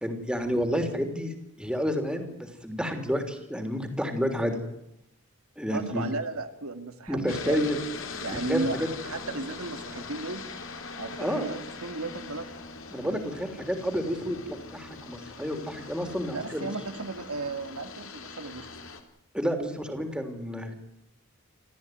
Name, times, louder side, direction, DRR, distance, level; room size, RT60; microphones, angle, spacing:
voice 1, 0.0-4.6 5.6-6.0 7.1-7.8 8.3-8.6 11.2-11.5 12.9-16.7 19.3-20.7, equal, 5° right, 5 dB, 3.2 m, -30 dB
voice 2, 5.7-7.6 8.2-10.4 11.0-12.5 13.0-13.2 16.3-18.7, right 3 dB, 90° right, 7 dB, 2.2 m, -35 dB
sound 1, 7.3-19.0, left 4 dB, 65° left, 3.0 m, -41 dB
28.0 x 14.0 x 9.3 m, 0.82 s
head